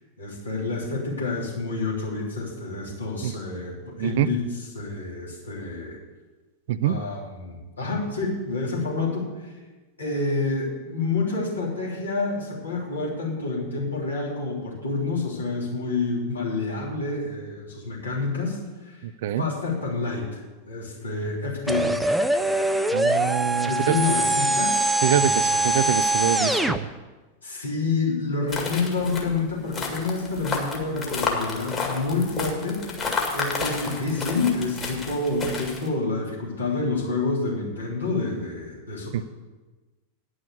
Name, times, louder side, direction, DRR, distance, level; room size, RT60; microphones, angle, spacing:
voice 1, 0.2-6.0 6.8-9.5 10.0-19.0 19.4-21.9 23.6-25.6 27.4-33.0 33.3-39.2, left 3 dB, 75° left, -5 dB, 3.2 m, -28 dB
voice 2, 4.0-4.3 6.7-7.0 19.2-19.4 22.9-24.0 25.0-26.9 39.1-39.2, right 11 dB, 55° right, 16 dB, 0.4 m, -25 dB
sound 1, 21.7-26.8, right 2 dB, 5° right, 0.5 m, -23 dB
sound 2, 28.5-35.9, left 4 dB, 25° left, 2.0 m, -31 dB
10.0 x 6.3 x 8.0 m, 1.2 s
figure-of-eight pair, 90°, 0 cm